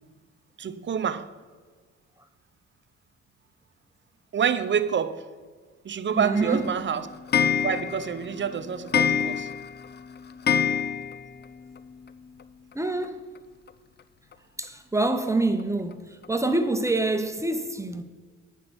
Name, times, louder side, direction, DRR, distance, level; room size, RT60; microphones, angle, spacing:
voice 1, 0.6-1.3 4.3-5.2 5.8-7.1 7.6-9.5, right 7 dB, 40° right, 0.7 m, -27 dB
voice 2, 6.1-6.7 12.7-13.3 14.6-18.0, right 2 dB, 10° right, 0.8 m, -26 dB
Clock, 6.4-11.4 11.8-11.9 12.1-12.2 12.4-12.5 13.7-13.8 14.3-14.4 15.0-15.1 15.6-15.7 16.2-16.3 16.9-17.0, left 8 dB, 35° left, 0.5 m, -27 dB
9.1 x 6.0 x 7.8 m
cardioid pair, 90°, 30 cm